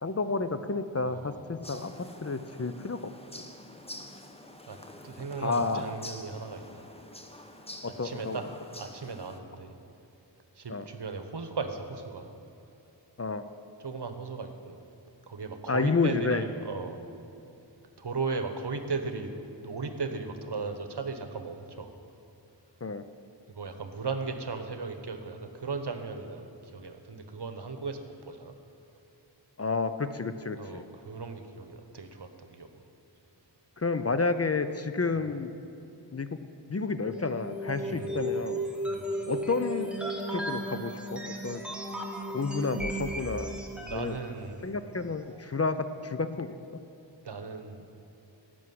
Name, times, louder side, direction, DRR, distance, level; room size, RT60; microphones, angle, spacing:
voice 1, 0.0-3.1 5.4-5.9 7.8-8.5 10.7-10.9 13.2-13.4 15.7-16.4 22.8-23.0 29.6-30.8 33.8-35.5 36.1-36.3 36.7-38.6 39.3-39.9 40.3-41.6 42.3-43.6 43.9-44.2 44.6-46.6, left 4 dB, 35° left, 10 dB, 0.5 m, -30 dB
voice 2, 1.1-1.4 4.7-4.8 5.0-6.9 8.0-8.4 8.7-9.7 10.5-12.3 13.8-14.8 15.2-17.0 18.0-19.3 19.6-21.9 23.5-28.5 30.6-32.8 37.8-38.1 38.9-39.1 43.8-44.8 47.2-47.8, right 4 dB, 65° right, 7 dB, 1.1 m, -37 dB
sound 1, 1.6-9.4, left 1 dB, 15° left, 1.0 m, -47 dB
sound 2, 37.0-44.2, right 1 dB, ahead, 1.5 m, -35 dB
14.0 x 6.2 x 9.4 m, 2.9 s
wide cardioid pair, 60°, 44 cm